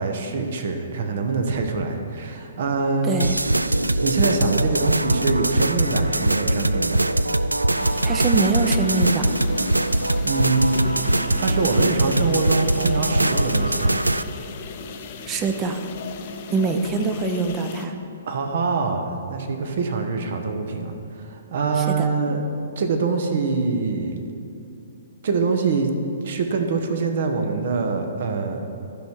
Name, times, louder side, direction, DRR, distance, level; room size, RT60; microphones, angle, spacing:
voice 1, 0.0-3.1 4.0-7.1 10.2-10.9 11.3-14.0 18.3-22.4 22.8-24.2 25.2-25.9 26.2-28.6, right 4 dB, 55° right, 5 dB, 1.0 m, -24 dB
voice 2, 3.0-3.4 8.0-9.3 15.3-15.8 16.5-17.9 21.8-22.1, right 4 dB, 25° right, 6 dB, 0.8 m, -24 dB
sound 1, 3.2-14.2, right 1 dB, 85° right, 0.3 m, -22 dB
sound 2, 7.7-17.9, left 6 dB, 45° left, 0.7 m, -37 dB
12.5 x 5.7 x 4.7 m, 2.7 s
figure-of-eight pair, 120°, 0 cm